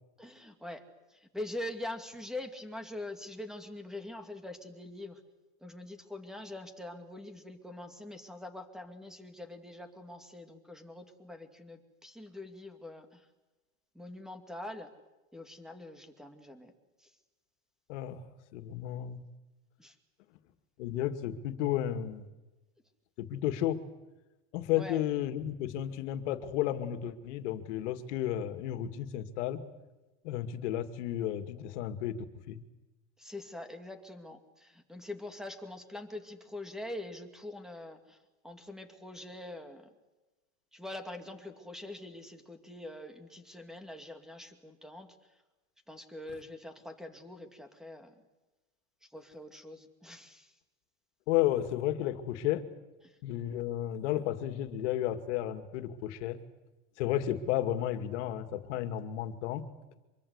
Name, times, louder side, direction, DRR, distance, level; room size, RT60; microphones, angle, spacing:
voice 1, 0.2-0.8 1.1-5.2 5.6-13.3 13.9-14.9 15.3-16.7 17.0-17.1 19.8-20.0 24.7-25.0 33.2-38.2 38.4-39.9 40.7-45.2 45.9-48.2 49.0-50.5 53.0-53.2, left 1 dB, ahead, 7 dB, 2.3 m, -44 dB
voice 2, 17.9-18.2 18.5-19.2 20.8-22.3 23.2-23.8 24.5-29.6 30.2-32.6 51.3-52.6 53.2-56.4 57.0-59.7, left 12 dB, 75° left, 9 dB, 2.2 m, -32 dB
25.0 x 23.0 x 8.2 m, 1.1 s
supercardioid pair, 150°, 35 cm